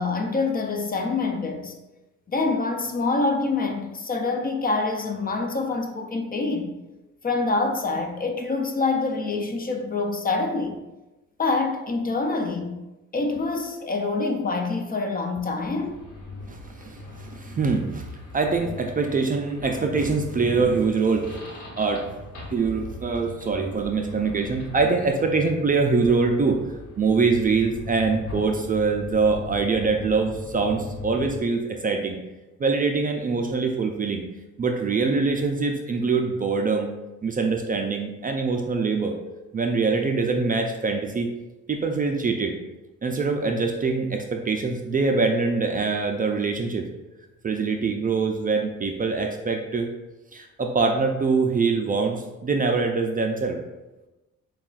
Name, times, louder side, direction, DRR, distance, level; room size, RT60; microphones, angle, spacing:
voice 1, 0.0-1.7 2.3-6.7 7.2-10.8 11.4-12.8 13.1-16.0, left 3 dB, 30° left, 0.5 m, -26 dB
sound 1, 15.7-31.4, left 1 dB, 80° left, 1.1 m, -39 dB
voice 2, 16.5-21.4 21.8-22.0 22.5-26.6 27.0-32.2 32.6-34.2 34.6-36.9 37.2-39.2 39.5-41.3 41.7-42.6 43.0-46.9 47.4-49.9 50.3-53.6, right 4 dB, 30° right, 0.4 m, -24 dB
sound 2, 21.4-24.8, right 1 dB, 5° right, 1.2 m, -42 dB
6.8 x 2.3 x 2.4 m
cardioid pair, 90°, 30 cm